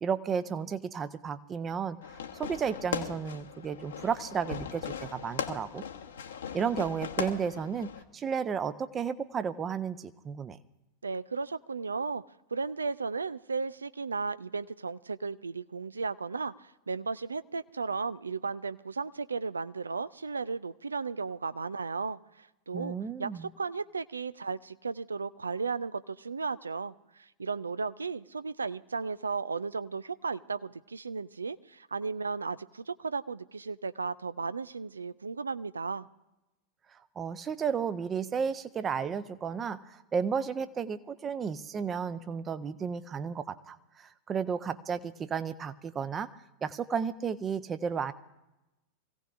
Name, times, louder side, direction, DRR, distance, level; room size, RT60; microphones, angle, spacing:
voice 1, 0.0-2.0 2.3-5.8 6.5-10.6 22.7-23.5 37.2-46.3 46.6-48.1, right 6 dB, 25° right, 13 dB, 0.8 m, -33 dB
Fireworks, 2.0-8.0, left 7 dB, 65° left, 1.2 m, -38 dB
voice 2, 11.0-12.2 12.5-23.3 23.6-36.1, right 4 dB, 75° right, 16 dB, 0.4 m, -35 dB
25.0 x 16.5 x 2.5 m, 0.98 s
figure-of-eight pair, 90°, 0 cm